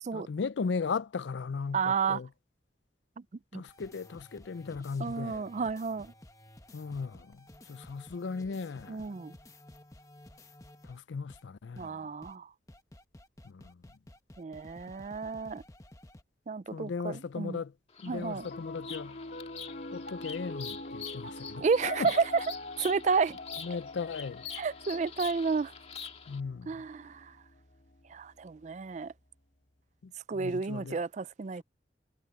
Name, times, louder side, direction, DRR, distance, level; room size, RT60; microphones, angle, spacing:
voice 1, 0.1-2.3 3.5-5.5 6.7-9.2 10.8-12.1 13.4-13.8 16.7-17.7 18.0-19.2 19.9-21.6 22.0-22.1 23.6-24.5 26.3-26.8 30.0-31.0, left 5 dB, 80° left, 0.5 m, -37 dB
voice 2, 1.7-2.2 3.5-3.6 5.0-6.1 8.9-9.4 11.8-12.5 14.4-15.6 16.5-17.6 18.1-18.5 21.6-22.2 22.8-23.4 24.6-25.7 26.7-27.4 28.1-29.1 30.3-31.6, right 5 dB, 40° right, 0.4 m, -31 dB
sound 1, 3.6-11.0 11.3-11.4 11.8-11.9 12.2-12.3 12.7-16.2, left 1 dB, 20° left, 1.1 m, -53 dB
Bird vocalization bird call bird song, 17.9-26.4, left 7 dB, 35° left, 1.8 m, -45 dB
Piano, 18.1-28.5, left 2 dB, 50° left, 2.6 m, -44 dB
head